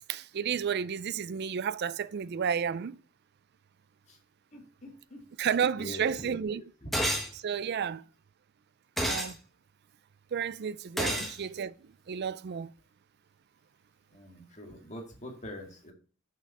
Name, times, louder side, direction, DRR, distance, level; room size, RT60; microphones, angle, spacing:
voice 1, 0.1-3.0 5.4-6.6 7.3-8.0 9.0-9.4 10.3-11.7 12.1-12.7, right 7 dB, 50° right, 0.4 m, -31 dB
voice 2, 4.5-5.5 5.8-6.9 11.0-11.2 14.1-15.9, equal, 35° left, 2.0 m, -44 dB
sound 1, 6.9-7.3 9.0-9.3 11.0-11.3, equal, ahead, 1.3 m, -29 dB
6.2 x 5.4 x 6.5 m
head